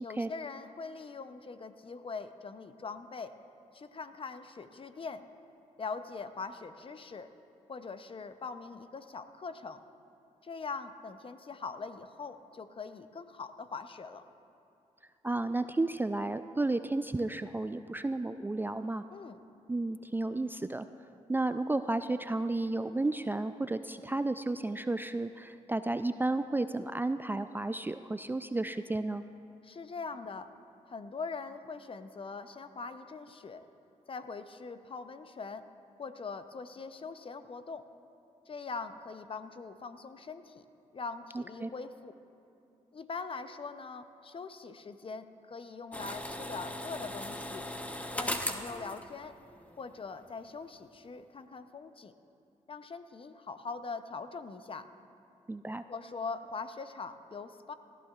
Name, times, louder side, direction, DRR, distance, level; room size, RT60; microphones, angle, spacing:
voice 1, 0.0-3.4 3.7-5.3 5.8-7.3 7.7-9.8 10.4-14.2 19.1-19.4 29.6-30.5 30.9-33.7 34.1-35.7 36.0-37.9 38.5-40.7 40.9-42.1 42.9-47.7 48.1-49.4 49.8-52.1 52.7-54.9 55.9-57.7, left 4 dB, 40° left, 10 dB, 0.6 m, -42 dB
voice 2, 15.2-19.0 19.7-20.9 21.3-29.2 41.3-41.7 55.5-55.8, right 2 dB, 15° right, 10 dB, 0.3 m, -32 dB
sound 1, 45.9-50.0 50.2-50.3, left 1 dB, 10° left, 1.0 m, -38 dB
18.5 x 13.0 x 2.4 m, 2.6 s
supercardioid pair, 50°, 14 cm